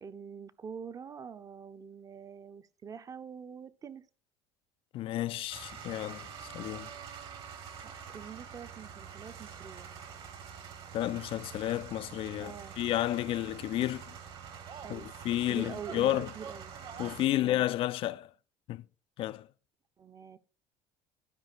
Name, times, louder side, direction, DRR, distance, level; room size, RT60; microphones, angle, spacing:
voice 1, 0.0-4.1 7.8-9.9 12.4-12.8 14.8-15.1 15.5-16.7 17.3-17.7 20.0-20.4, right 6 dB, 30° right, 0.7 m, -45 dB
voice 2, 4.9-6.9 10.9-14.1 14.9-16.3 17.0-18.3 18.7-18.8 19.2-19.5, left 14 dB, 55° left, 0.4 m, -32 dB
sound 1, 5.5-17.3, right 7 dB, 55° right, 1.6 m, -46 dB
12.0 x 5.0 x 4.2 m
supercardioid pair, 100°, 11 cm